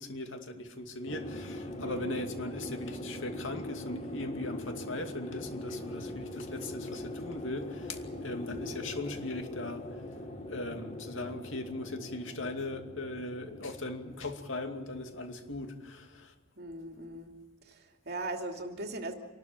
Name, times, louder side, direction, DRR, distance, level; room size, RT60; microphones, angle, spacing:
voice 1, 0.0-10.0 10.5-16.3, left 2 dB, 75° left, 2.5 m, -39 dB
sound 1, 1.1-15.9, left 1 dB, 35° left, 2.3 m, -42 dB
voice 2, 1.8-2.2 8.5-8.8 16.6-17.3 17.6-19.1, right 2 dB, 55° right, 2.8 m, -39 dB
27.0 x 12.5 x 9.2 m
head